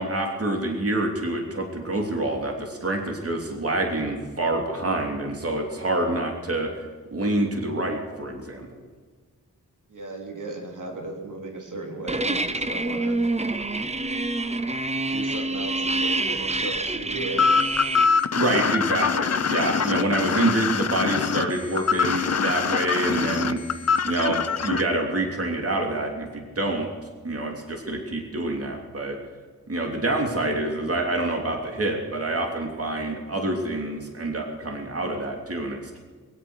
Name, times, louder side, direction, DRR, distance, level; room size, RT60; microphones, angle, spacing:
voice 1, 0.0-6.7 7.1-8.7 18.3-23.6 24.0-26.9 27.2-29.2 29.7-36.0, right 2 dB, 40° right, 2 dB, 3.1 m, -27 dB
voice 2, 9.9-13.2 15.1-17.4, right 2 dB, 60° right, 1 dB, 3.4 m, -35 dB
sound 1, 12.1-18.1, right 2 dB, 20° right, 0.9 m, -27 dB
sound 2, 17.4-24.8, left 6 dB, 45° left, 0.8 m, -23 dB
22.0 x 8.7 x 6.5 m, 1.5 s
cardioid pair, 60°, 34 cm